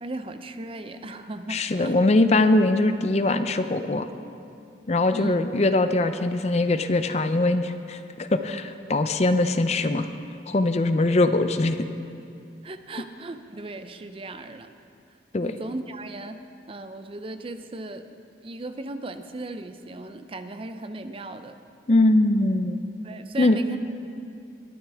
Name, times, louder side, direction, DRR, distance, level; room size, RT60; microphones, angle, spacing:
voice 1, 0.0-2.0 5.1-5.3 12.6-14.7 15.4-18.2 18.4-21.6 23.0-23.8, right 2 dB, 30° right, 9 dB, 0.5 m, -37 dB
voice 2, 1.5-4.1 4.9-10.1 10.5-11.8 15.3-15.5 21.9-22.8 23.4-23.6, left 2 dB, 35° left, 10 dB, 0.5 m, -22 dB
21.5 x 12.5 x 3.5 m, 2.5 s
head